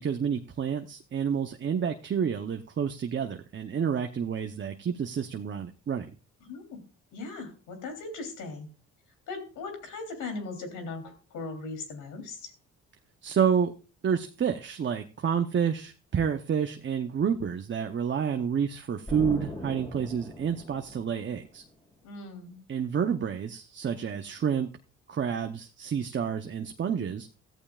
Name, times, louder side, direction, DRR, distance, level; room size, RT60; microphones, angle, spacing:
voice 1, 0.0-6.1 13.2-13.7 14.0-21.6 22.7-24.7 25.1-27.3, right 7 dB, 40° right, 6 dB, 0.8 m, -29 dB
voice 2, 6.4-6.8 7.1-8.7 9.3-12.5 22.0-22.6, left 3 dB, 85° left, 6 dB, 3.4 m, -39 dB
Explosion, 19.1-21.7, equal, 15° left, 4.5 m, -40 dB
14.5 x 14.0 x 2.4 m, 0.34 s
cardioid pair, 90°, 30 cm